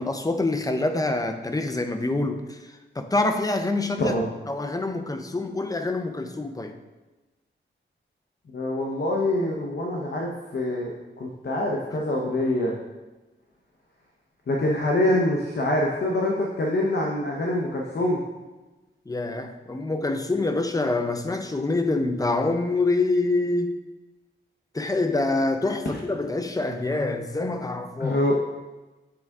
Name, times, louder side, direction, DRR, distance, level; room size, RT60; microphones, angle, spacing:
voice 1, 0.0-2.6 3.0-4.2 4.5-6.8 11.9-12.0 19.1-23.8 24.7-28.2, left 2 dB, 20° left, 6 dB, 0.5 m, -26 dB
voice 2, 8.5-12.7 14.5-18.2 28.0-28.4, left 1 dB, 55° left, -1 dB, 0.8 m, -25 dB
7.9 x 3.5 x 3.5 m, 1.1 s
wide cardioid pair, 115°, 20 cm